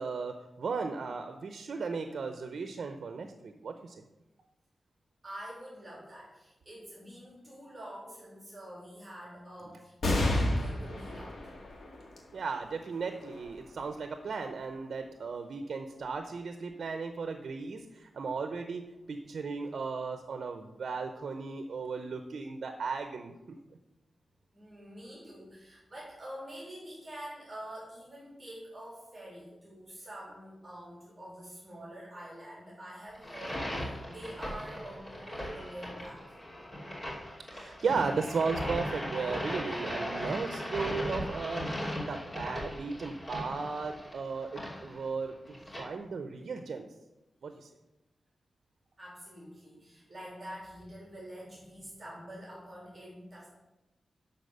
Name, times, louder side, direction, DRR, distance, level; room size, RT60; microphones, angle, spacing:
voice 1, 0.0-4.0 12.3-23.3 37.5-41.7 42.1-46.9 47.4-47.7, right 4 dB, 60° right, 6 dB, 0.7 m, -36 dB
voice 2, 5.2-11.5 24.5-36.4 49.0-53.5, equal, 20° right, -6 dB, 3.4 m, -46 dB
sound 1, 10.0-16.9 17.5-17.6 18.7-19.3, left 1 dB, 85° left, 2.1 m, -35 dB
sound 2, 33.2-45.8, equal, 35° left, 2.8 m, -38 dB
11.5 x 4.2 x 6.8 m, 0.99 s
wide cardioid pair, 175°, 0 cm